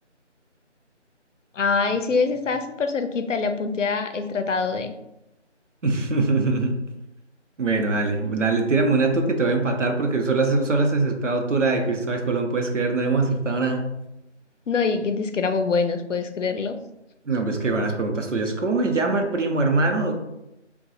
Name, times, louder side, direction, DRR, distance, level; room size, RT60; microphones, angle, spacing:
voice 1, 1.6-4.9 14.7-16.8, left 4 dB, 90° left, 8 dB, 0.5 m, -24 dB
voice 2, 5.8-6.8 7.6-13.8 17.3-20.1, right 3 dB, 90° right, 3 dB, 0.8 m, -22 dB
4.0 x 2.3 x 2.6 m, 0.89 s
figure-of-eight pair, 170°, 36 cm